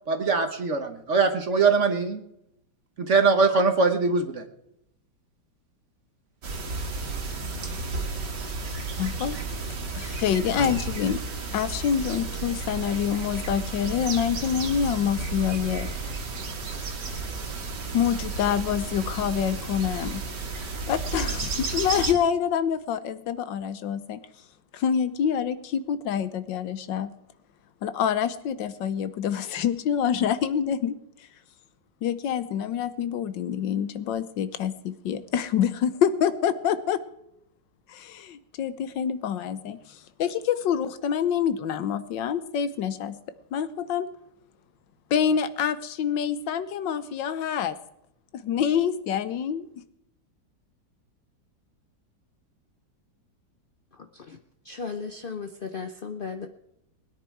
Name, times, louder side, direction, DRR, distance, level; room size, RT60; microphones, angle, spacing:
voice 1, 0.1-2.2 3.0-4.4, right 4 dB, 45° right, 7 dB, 1.3 m, -22 dB
sound 1, 6.4-22.1, right 3 dB, 65° right, 2.3 m, -32 dB
voice 2, 9.0-9.4 9.9-11.2 11.5-15.9 17.9-20.2 20.9-24.2 24.7-27.1 27.8-30.9 32.0-37.0 37.9-43.2 43.5-44.1 45.1-47.8 48.3-49.7, left 8 dB, 80° left, 13 dB, 1.5 m, -26 dB
voice 3, 54.7-56.5, left 5 dB, 55° left, 6 dB, 0.5 m, -35 dB
20.5 x 10.0 x 4.7 m, 0.81 s
omnidirectional pair, 2.0 m